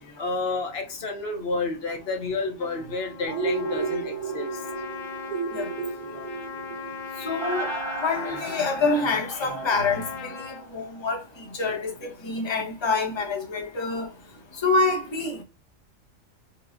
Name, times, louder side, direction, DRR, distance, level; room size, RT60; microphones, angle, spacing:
voice 1, 0.2-4.6, left 3 dB, 55° left, 0.8 m, -30 dB
Trumpet, 2.6-10.6, left 5 dB, 80° left, 1.0 m, -39 dB
sound 1, 3.3-11.2 11.5-11.6, right 4 dB, 50° right, 1.0 m, -34 dB
voice 2, 7.2-7.7 8.0-10.3 10.7-11.2 11.5-11.9 12.2-14.1 14.6-15.4, left 3 dB, 25° left, 0.6 m, -26 dB
4.6 x 2.0 x 2.4 m
omnidirectional pair, 1.4 m